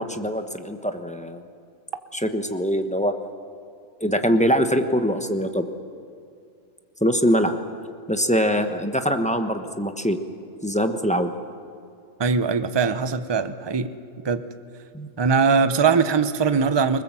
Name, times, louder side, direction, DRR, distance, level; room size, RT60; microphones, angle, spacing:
voice 1, 0.0-1.4 2.1-3.1 4.0-5.7 7.0-7.6 8.1-10.2 10.6-11.3 14.9-15.1, equal, 5° left, 6 dB, 1.0 m, -23 dB
voice 2, 12.2-13.9 14.2-14.4 15.2-17.0, right 5 dB, 25° right, 11 dB, 0.6 m, -21 dB
26.5 x 20.0 x 7.6 m, 2.3 s
omnidirectional pair, 1.4 m